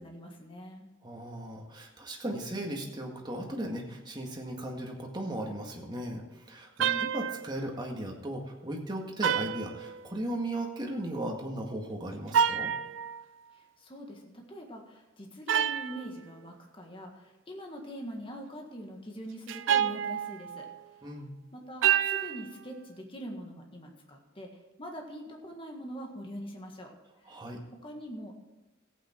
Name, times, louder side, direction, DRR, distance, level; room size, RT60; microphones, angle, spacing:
voice 1, 0.0-0.9 6.8-7.0 13.5-20.7 21.5-24.5 24.8-26.9 27.2-27.4 27.8-28.5, equal, 25° left, 1 dB, 1.7 m, -43 dB
voice 2, 1.0-12.7 21.0-21.3 27.3-27.6, right 1 dB, 20° right, 0 dB, 1.9 m, -37 dB
sound 1, 6.8-7.6 9.2-10.4 12.3-13.2 15.5-16.1 19.5-20.8 21.8-22.5, right 9 dB, 65° right, 0.4 m, -28 dB
14.5 x 8.9 x 4.5 m, 1.1 s
head